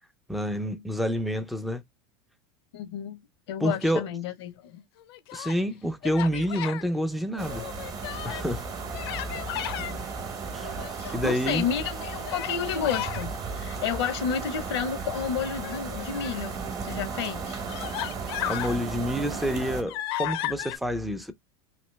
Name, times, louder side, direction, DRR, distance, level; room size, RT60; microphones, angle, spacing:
voice 1, 0.3-1.8 3.6-4.1 5.3-7.7 8.2-8.6 10.5-10.8 11.1-11.6 18.5-21.3, equal, ahead, 0.4 m, -28 dB
voice 2, 2.7-3.2 3.5-4.8 9.7-10.0 10.9-17.6, left 8 dB, 85° left, 0.9 m, -31 dB
Human voice, 5.0-5.6 6.0-6.8 7.4-8.5 8.9-9.9 10.6-11.3 12.2-13.2 15.5-16.4 17.1-17.2 17.7-18.8 19.2-20.8, left 13 dB, 65° left, 0.6 m, -35 dB
sound 1, 7.4-19.8, right 5 dB, 25° right, 0.8 m, -35 dB
3.0 x 2.7 x 3.1 m
supercardioid pair, 140°, 14 cm